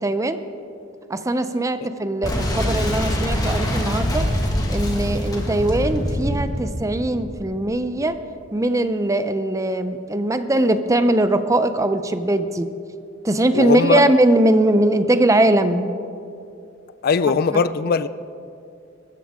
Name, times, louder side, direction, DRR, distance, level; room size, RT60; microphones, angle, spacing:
voice 1, 0.0-0.4 1.1-4.2 4.7-8.2 8.5-12.7 13.2-15.9 17.5-17.6, right 1 dB, 15° right, 10 dB, 0.6 m, -20 dB
Boom, 2.2-7.8, equal, 20° left, 1.7 m, -24 dB
voice 2, 13.5-14.0 17.0-18.1, left 5 dB, 50° left, 15 dB, 0.4 m, -19 dB
22.0 x 13.5 x 3.7 m, 2.6 s
head